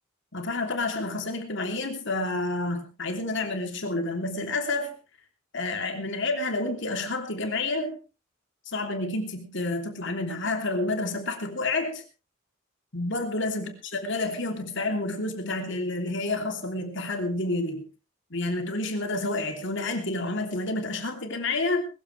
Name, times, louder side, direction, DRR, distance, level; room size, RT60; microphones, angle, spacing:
voice 1, 0.3-4.9 5.5-8.0 8.7-12.0 12.9-13.7 14.0-17.9 18.3-21.8, left 2 dB, 60° left, 4 dB, 3.2 m, -29 dB
21.0 x 15.0 x 3.4 m, 0.32 s
head